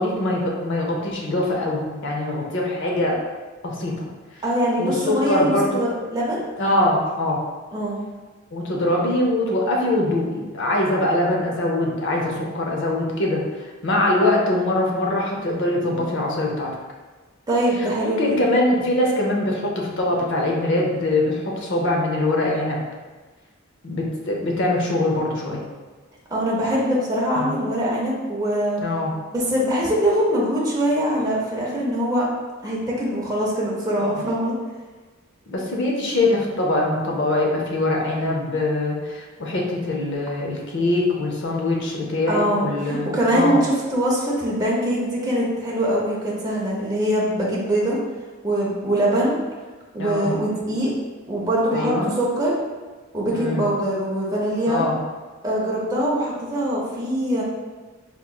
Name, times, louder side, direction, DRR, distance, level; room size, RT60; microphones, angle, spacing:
voice 1, 0.0-3.2 3.6-3.9 4.8-5.8 6.6-7.4 8.5-13.4 13.8-16.7 17.8-22.8 23.8-25.6 27.4-27.6 28.8-29.1 34.0-34.2 35.5-43.6 50.0-50.3 51.7-52.1 53.3-53.6 54.7-55.0, left 1 dB, 60° left, -1 dB, 0.6 m, -23 dB
voice 2, 4.4-6.4 7.7-8.0 17.5-18.4 26.3-28.8 29.3-32.2 32.6-34.5 42.3-48.0 48.4-49.4 49.9-50.9 51.3-52.5 53.1-54.8 55.4-57.4, equal, 20° right, -5 dB, 0.6 m, -23 dB
3.7 x 2.9 x 2.3 m, 1.3 s
head